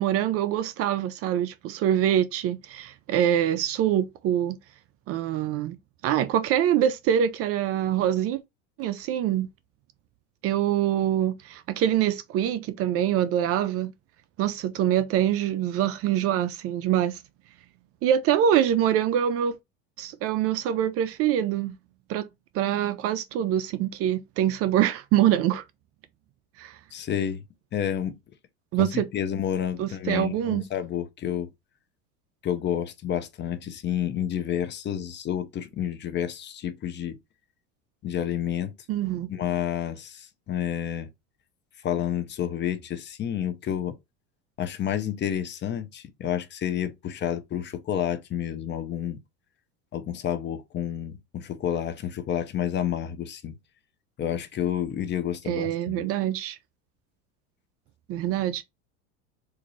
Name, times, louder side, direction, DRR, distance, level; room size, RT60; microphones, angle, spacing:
voice 1, 0.0-4.6 5.1-5.8 6.0-8.4 8.8-9.5 10.4-13.9 14.4-17.2 18.0-19.6 20.0-21.8 22.1-22.3 22.5-25.6 26.6-26.8 28.7-29.1 29.8-30.7 38.9-39.3 55.5-56.6 58.1-58.6, right 10 dB, 40° right, 0.4 m, -24 dB
voice 2, 26.9-27.4 27.7-28.1 28.8-31.5 32.4-37.2 38.0-38.7 39.3-41.1 41.8-43.9 44.6-49.2 49.9-53.6 54.2-56.1, left 10 dB, 30° left, 0.6 m, -30 dB
3.8 x 2.6 x 3.0 m
supercardioid pair, 110°, 36 cm